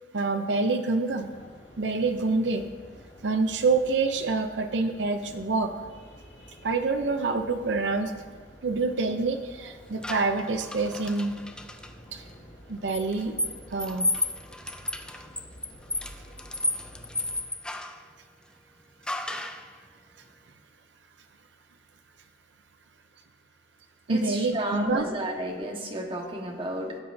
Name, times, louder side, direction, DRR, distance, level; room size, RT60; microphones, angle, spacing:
voice 1, 0.1-1.3 1.8-2.7 3.2-5.7 6.6-8.1 8.6-11.3 12.1-12.2 12.7-13.4 13.7-14.1 24.1-25.1, right 3 dB, 85° right, 7 dB, 0.6 m, -26 dB
sound 1, 1.0-17.4, equal, 70° left, 2.0 m, -50 dB
sound 2, 10.0-11.9 12.9-18.0 19.1-19.7, left 2 dB, 5° left, 0.4 m, -32 dB
voice 2, 24.1-27.0, right 1 dB, 30° right, 0 dB, 1.4 m, -32 dB
17.0 x 7.8 x 2.7 m, 1.5 s
head